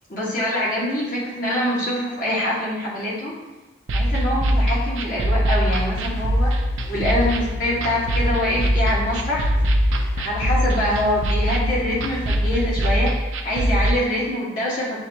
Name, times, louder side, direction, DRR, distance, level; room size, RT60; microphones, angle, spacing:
voice 1, 0.1-3.3 3.9-6.5 6.9-9.4 10.1-15.0, left 1 dB, 45° left, -7 dB, 1.0 m, -24 dB
sound 1, 3.9-13.9, equal, 85° right, 0.4 m, -22 dB
sound 2, 5.7-12.7, left 4 dB, 70° left, 0.8 m, -33 dB
7.3 x 2.8 x 2.2 m, 1.1 s
head